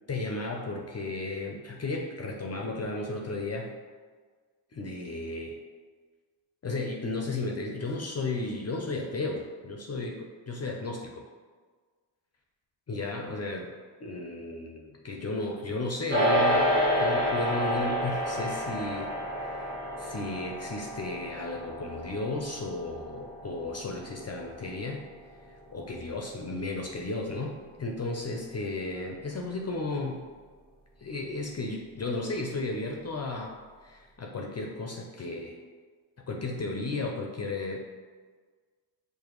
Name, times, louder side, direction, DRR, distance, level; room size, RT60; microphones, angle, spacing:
voice 1, 0.1-3.7 4.7-5.6 6.6-11.2 12.9-13.7 14.0-16.7 17.0-19.1 19.4-19.7 20.0-25.1 25.7-30.3 31.0-33.5 33.8-35.6 36.3-37.8, left 2 dB, 30° left, 0 dB, 0.5 m, -34 dB
sound 1, 16.1-25.6, equal, 25° right, 1.2 m, -29 dB
5.0 x 2.2 x 3.0 m, 1.5 s
cardioid pair, 55°, 50 cm